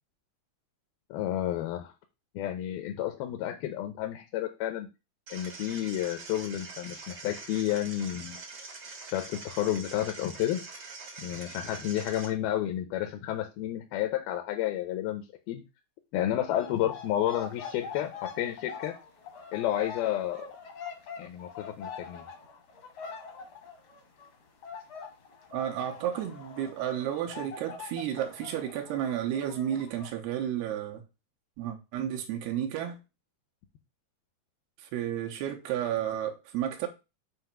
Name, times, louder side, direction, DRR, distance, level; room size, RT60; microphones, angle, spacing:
voice 1, 1.1-1.9 2.4-4.9 5.3-8.4 9.1-10.6 11.2-15.6 16.1-19.0 19.5-20.5 21.2-22.2, left 12 dB, 75° left, 2.5 m, -31 dB
sound 1, 5.3-12.3, right 4 dB, 70° right, 1.0 m, -44 dB
sound 2, 16.5-24.4 24.6-30.1, left 5 dB, 60° left, 1.2 m, -44 dB
voice 2, 25.5-31.0 31.6-33.0 34.8-36.9, right 10 dB, 90° right, 3.0 m, -32 dB
7.7 x 2.9 x 5.7 m
omnidirectional pair, 4.5 m